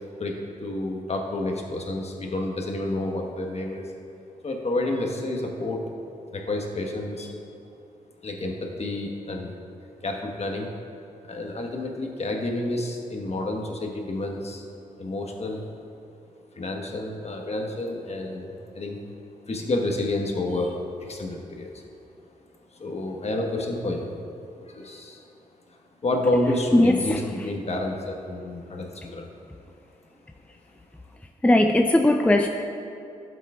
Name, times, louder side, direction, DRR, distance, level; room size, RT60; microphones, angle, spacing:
voice 1, 0.2-3.8 4.4-5.8 6.3-7.4 8.2-9.5 10.0-10.7 11.3-14.7 15.0-15.6 16.5-19.0 19.5-21.8 22.7-24.1 24.6-25.2 26.0-29.3, left 2 dB, 45° left, 1 dB, 1.3 m, -29 dB
voice 2, 26.7-27.5 31.4-32.5, left 1 dB, 10° left, 4 dB, 0.5 m, -19 dB
12.0 x 7.4 x 2.4 m, 2.6 s
supercardioid pair, 55°, 15 cm